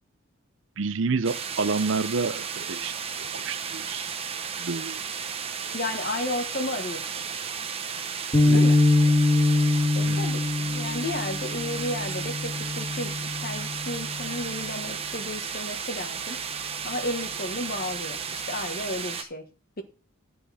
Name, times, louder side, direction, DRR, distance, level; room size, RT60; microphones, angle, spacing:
voice 1, 0.8-2.9 3.3-4.1 4.6-5.0 8.3-8.6 10.0-10.2, right 4 dB, 60° right, 0.6 m, -29 dB
sound 1, 1.2-19.2, right 6 dB, 30° right, 0.9 m, -34 dB
voice 2, 5.7-7.0 8.5-8.8 9.9-16.4 16.8-19.5 19.8-19.9, left 1 dB, 45° left, 1.4 m, -33 dB
sound 2, 8.3-14.8, left 2 dB, 25° left, 1.9 m, -24 dB
12.5 x 6.8 x 4.2 m
head